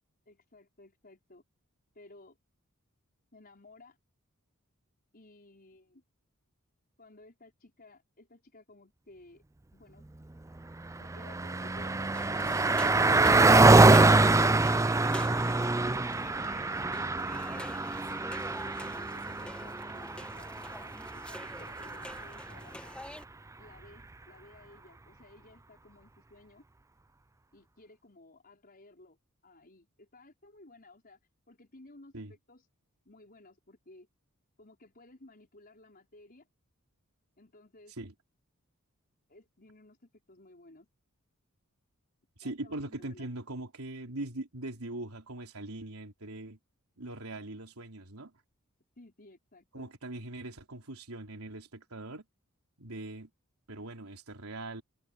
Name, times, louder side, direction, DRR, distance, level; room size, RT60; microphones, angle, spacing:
voice 1, 0.3-1.4 1.9-2.4 3.3-4.0 5.1-6.0 7.0-9.4 9.7-10.0 11.0-13.8 18.8-23.0 23.6-26.6 27.5-29.2 29.4-31.2 31.5-32.7 33.1-34.1 34.6-36.5 37.4-37.9 39.3-40.9 42.4-43.3 49.0-49.9, left 2 dB, 45° left, 5.3 m, -56 dB
Car passing by, 10.6-22.4, right 2 dB, 15° right, 0.5 m, -25 dB
sound 1, 12.1-23.2, left 1 dB, 5° left, 1.3 m, -45 dB
voice 2, 42.4-46.6 47.0-48.3 49.7-52.2 52.8-53.3 53.7-54.8, right 2 dB, 90° right, 3.6 m, -41 dB
head